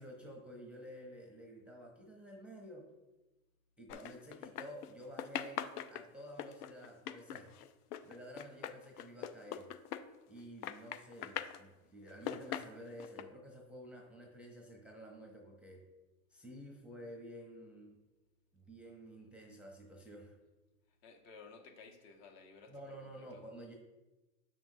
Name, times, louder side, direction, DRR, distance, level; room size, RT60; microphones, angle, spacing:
voice 1, 0.0-2.9 3.8-7.6 8.0-9.7 10.3-15.8 16.3-18.0 18.5-20.4 22.7-23.7, equal, 5° right, 0 dB, 0.6 m, -51 dB
sound 1, 3.9-4.9 5.2-10.4 10.6-11.6 12.1-13.2, left 10 dB, 80° left, 0.6 m, -42 dB
voice 2, 21.0-23.4, left 4 dB, 55° left, 3 dB, 1.1 m, -56 dB
7.0 x 5.8 x 2.7 m, 1.1 s
supercardioid pair, 125°, 45 cm